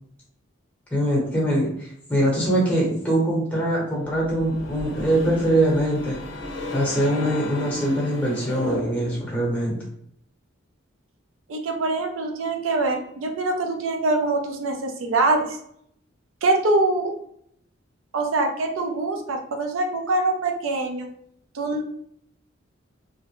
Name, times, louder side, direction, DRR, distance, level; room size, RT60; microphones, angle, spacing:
voice 1, 0.9-6.2 6.7-9.8, right 1 dB, 5° left, -4 dB, 0.8 m, -23 dB
sound 1, 4.1-9.4, left 1 dB, 65° left, 0.5 m, -33 dB
voice 2, 11.5-15.6 16.4-17.1 18.1-21.1 21.5-21.9, right 2 dB, 80° right, 3 dB, 0.4 m, -24 dB
2.6 x 2.0 x 2.9 m, 0.69 s
head